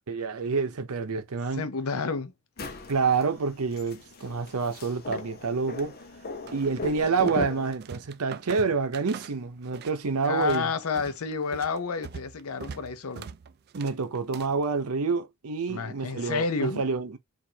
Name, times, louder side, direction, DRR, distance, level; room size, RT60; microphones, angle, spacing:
voice 1, 0.1-1.7 2.9-6.0 6.5-10.7 13.7-17.2, right 4 dB, 85° right, 0.7 m, -28 dB
voice 2, 1.6-2.3 10.2-13.3 15.7-16.8, left 5 dB, 75° left, 0.6 m, -30 dB
sound 1, 2.6-7.7, left 3 dB, 45° left, 0.8 m, -38 dB
sound 2, 6.5-7.5 7.7-10.0 10.2-14.6, right 6 dB, 45° right, 0.3 m, -42 dB
4.8 x 2.5 x 2.7 m
head